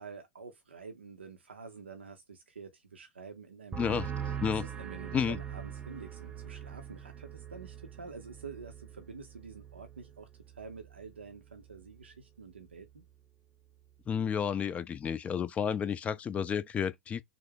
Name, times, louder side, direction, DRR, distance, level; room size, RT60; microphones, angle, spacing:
voice 1, 0.0-4.0 4.5-10.3 10.5-13.0, right 5 dB, 80° right, 0.5 m, -48 dB
sound 1, 3.7-11.2 11.5-12.0, right 8 dB, 15° right, 0.8 m, -42 dB
voice 2, 14.1-17.2, left 7 dB, 20° left, 0.4 m, -31 dB
3.6 x 2.0 x 3.3 m
figure-of-eight pair, 85°, 6 cm